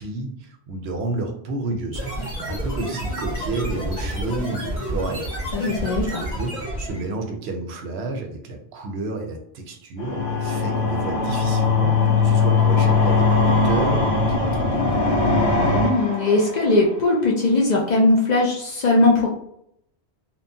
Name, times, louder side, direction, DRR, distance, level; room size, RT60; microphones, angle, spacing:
voice 1, 0.0-5.3 5.6-15.3, right 3 dB, 70° right, 3 dB, 0.8 m, -31 dB
sound 1, 1.9-7.1, right 1 dB, 35° left, 1.3 m, -29 dB
voice 2, 5.5-6.2 15.6-19.3, left 2 dB, 55° left, -2 dB, 0.5 m, -19 dB
sound 2, 10.0-17.0, left 4 dB, 75° left, 0.8 m, -20 dB
2.9 x 2.0 x 2.6 m, 0.72 s
omnidirectional pair, 1.1 m